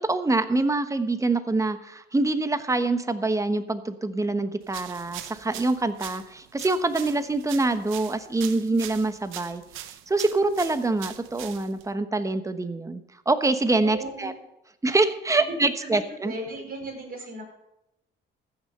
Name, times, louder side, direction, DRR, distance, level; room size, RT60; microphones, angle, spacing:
voice 1, 0.0-9.6 10.1-13.0 13.3-14.3 14.8-16.3, right 2 dB, 15° right, 10 dB, 1.1 m, -25 dB
sound 1, 4.7-11.9, right 12 dB, 85° right, 0.8 m, -41 dB
voice 2, 13.8-14.3 15.4-15.5 15.8-17.4, right 1 dB, 50° right, 0 dB, 4.9 m, -36 dB
14.5 x 6.5 x 6.6 m, 0.85 s
cardioid pair, 90°, 20 cm